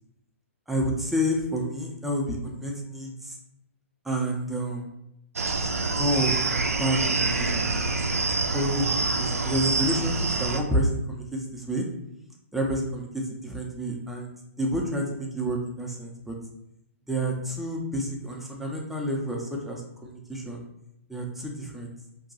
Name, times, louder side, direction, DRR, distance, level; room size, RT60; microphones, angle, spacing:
voice 1, 0.7-3.4 4.0-4.8 6.0-6.5 6.8-7.7 8.5-11.9 12.5-16.3 17.1-20.6 21.1-21.9, equal, ahead, -1 dB, 0.5 m, -29 dB
sound 1, 5.4-10.6, right 3 dB, 80° right, 0.4 m, -26 dB
2.7 x 2.2 x 3.9 m, 0.81 s
figure-of-eight pair, 125°, 8 cm